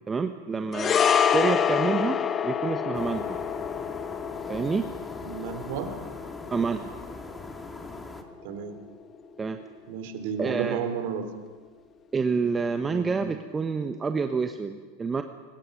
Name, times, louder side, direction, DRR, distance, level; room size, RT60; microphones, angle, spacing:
voice 1, 0.1-1.0 1.3-3.4 4.5-4.9 6.5-6.8 9.4-9.6 10.4-10.8 12.1-15.2, right 5 dB, 20° right, 7 dB, 1.1 m, -28 dB
sound 1, 0.7-9.2 9.5-9.7, left 8 dB, 30° left, 1.0 m, -28 dB
sound 2, 2.9-8.2, left 2 dB, 15° left, 2.4 m, -42 dB
voice 2, 5.2-5.9 8.4-8.7 9.9-11.2 12.9-13.1, right 7 dB, 60° right, 8 dB, 3.0 m, -32 dB
25.0 x 20.5 x 5.3 m, 1.4 s
figure-of-eight pair, 85°, 0 cm